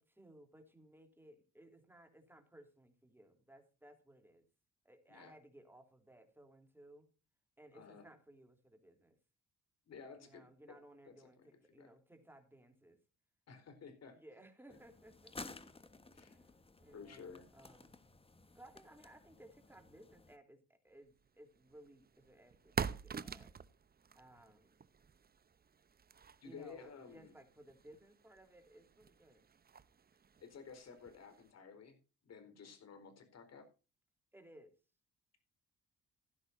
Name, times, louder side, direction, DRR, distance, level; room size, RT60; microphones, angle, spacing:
voice 1, 0.0-4.4 4.8-7.1 7.6-9.2 10.2-13.0 14.1-15.5 16.3-16.5 16.8-18.1 18.5-23.5 24.1-24.8 26.4-29.5 34.3-34.7, right 1 dB, 5° right, 6 dB, 3.3 m, -60 dB
voice 2, 7.7-8.1 9.9-10.8 11.2-11.5 11.8-11.9 13.5-14.2 16.1-16.4 16.9-17.5 26.4-27.3 30.4-32.0 32.2-33.7, left 5 dB, 55° left, 9 dB, 4.5 m, -53 dB
sound 1, 14.7-20.4, left 3 dB, 20° left, 1.3 m, -55 dB
sound 2, 21.2-31.5, right 6 dB, 30° right, 0.8 m, -47 dB
15.5 x 12.0 x 2.7 m, 0.33 s
cardioid pair, 90°, 30 cm